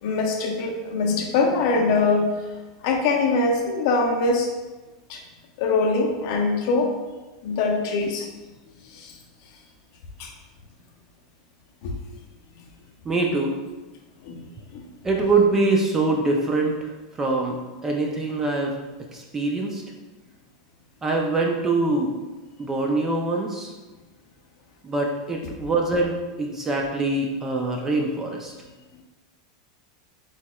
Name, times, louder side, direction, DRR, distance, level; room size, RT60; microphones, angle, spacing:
voice 1, 0.0-2.3 2.8-4.5 5.1-5.2 5.6-6.9 7.4-8.3 8.8-9.1 10.2-10.3 11.8-12.0 14.2-14.8, left 3 dB, 50° left, 2 dB, 0.7 m, -23 dB
voice 2, 13.1-13.6 15.0-18.7 19.1-19.8 21.0-22.1 22.6-23.7 24.8-28.5, right 3 dB, 10° right, 0 dB, 0.4 m, -24 dB
4.6 x 4.1 x 2.3 m, 1.2 s
supercardioid pair, 170°, 3 cm